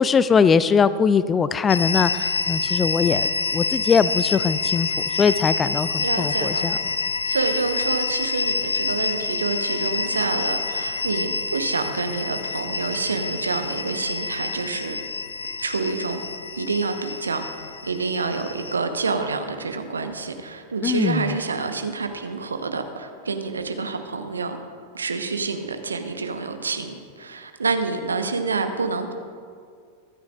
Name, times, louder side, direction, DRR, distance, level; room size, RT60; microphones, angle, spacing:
voice 1, 0.0-6.8 20.8-21.4, left 6 dB, 20° left, 15 dB, 0.4 m, -21 dB
sound 1, 1.7-18.8, left 4 dB, 75° left, 0.5 m, -27 dB
voice 2, 6.0-6.7 7.3-15.0 15.6-16.2 16.5-17.4 17.8-24.6 24.9-29.1, right 4 dB, 75° right, 7 dB, 1.0 m, -27 dB
23.5 x 9.4 x 2.5 m, 2.1 s
figure-of-eight pair, 90°, 0 cm